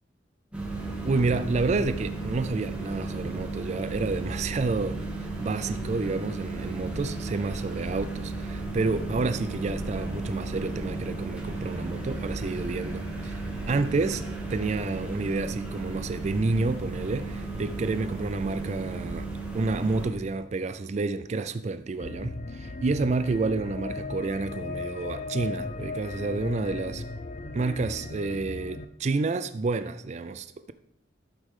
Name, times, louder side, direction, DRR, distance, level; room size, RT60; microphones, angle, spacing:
sound 1, 0.5-20.1, right 2 dB, 5° right, 2.2 m, -34 dB
voice 1, 0.8-14.2 14.5-19.3 19.5-27.0 27.5-30.7, right 3 dB, 40° right, 0.4 m, -29 dB
sound 2, 22.0-28.8, left 3 dB, 40° left, 0.5 m, -37 dB
11.5 x 8.1 x 3.7 m
head